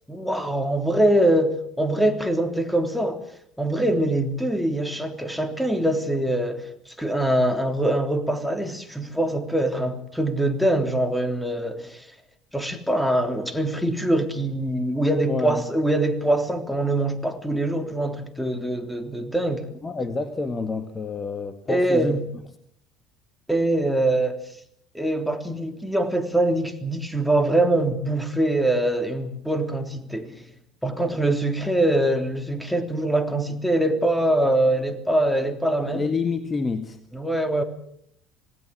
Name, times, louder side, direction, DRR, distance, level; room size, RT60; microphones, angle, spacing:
voice 1, 0.1-3.2 3.6-12.1 12.5-19.7 21.7-22.2 23.5-24.4 24.9-30.4 30.8-36.0 37.1-37.6, right 1 dB, ahead, 3.5 m, -23 dB
voice 2, 15.2-15.7 19.8-22.2 35.8-37.0, left 4 dB, 25° left, 2.0 m, -28 dB
27.0 x 18.5 x 7.7 m
figure-of-eight pair, 65°, 0 cm